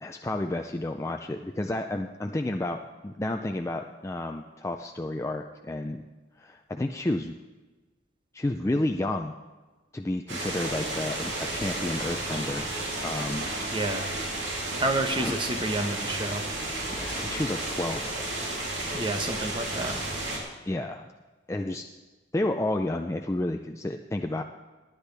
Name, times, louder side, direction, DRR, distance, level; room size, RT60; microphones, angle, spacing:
voice 1, 0.0-6.0 6.4-7.3 8.3-9.4 9.9-12.7 13.0-13.5 15.2-15.3 16.9-18.2 20.7-21.1 21.5-21.8 22.3-24.4, left 1 dB, 15° left, 4 dB, 0.4 m, -31 dB
sound 1, 10.3-20.4, right 2 dB, 75° right, 3.0 m, -32 dB
voice 2, 13.7-14.1 14.8-16.4 18.9-20.0, right 2 dB, 25° right, 6 dB, 1.0 m, -29 dB
18.5 x 10.0 x 3.4 m, 1.2 s
head